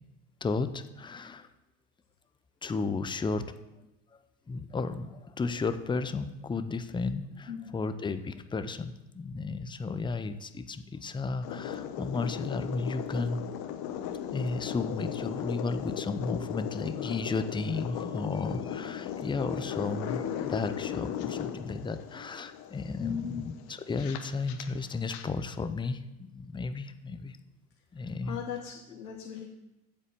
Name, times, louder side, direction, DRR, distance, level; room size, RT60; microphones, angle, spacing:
voice 1, 0.4-1.5 2.6-3.5 4.5-13.4 14.3-27.4 27.9-28.4, left 4 dB, 10° left, 11 dB, 0.6 m, -33 dB
voice 2, 7.5-7.9 23.0-23.5 28.3-29.5, left 8 dB, 90° left, 1 dB, 1.1 m, -38 dB
sound 1, 11.4-25.2, left 9 dB, 50° left, 1.2 m, -37 dB
8.2 x 7.5 x 6.8 m, 0.96 s
hypercardioid pair, 75°, 48 cm